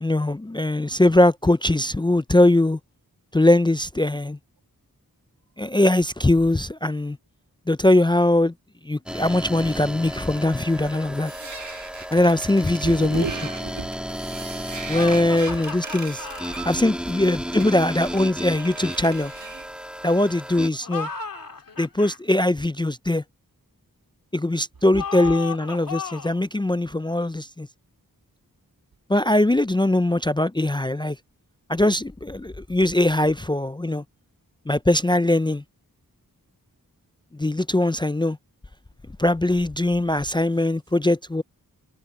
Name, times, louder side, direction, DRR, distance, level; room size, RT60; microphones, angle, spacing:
voice 1, 0.0-2.8 3.3-4.4 5.6-7.2 7.7-8.5 8.9-11.3 12.1-13.2 14.9-19.3 20.0-21.1 21.8-23.2 24.3-27.7 29.1-31.2 31.7-34.0 34.7-35.6 37.4-38.4 39.2-41.4, left 1 dB, 15° left, 0.4 m, -21 dB
sound 1, 9.1-20.7, equal, 5° right, 2.0 m, -34 dB
sound 2, 11.3-19.7, right 4 dB, 50° right, 1.5 m, -40 dB
voice 2, 12.8-14.0 15.5-15.6 16.8-16.9 24.9-25.0 40.1-40.2, right 5 dB, 70° right, 1.2 m, -33 dB
sound 3, 14.9-16.6 20.7-22.2 24.9-26.4, left 5 dB, 65° left, 2.3 m, -34 dB
wide cardioid pair, 50°, 36 cm